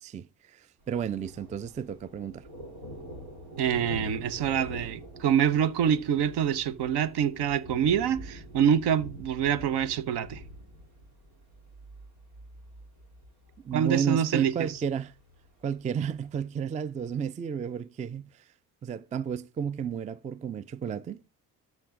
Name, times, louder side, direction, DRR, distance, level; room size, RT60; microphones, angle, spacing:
voice 1, 0.0-2.4 13.6-15.1 15.6-18.4 18.8-21.2, right 7 dB, 20° right, 0.4 m, -32 dB
Thunder, 0.8-16.4, equal, 85° right, 3.2 m, -46 dB
voice 2, 3.6-10.4 13.7-14.7, right 8 dB, 65° right, 0.9 m, -26 dB
13.0 x 6.0 x 3.7 m
hypercardioid pair, 55°, 43 cm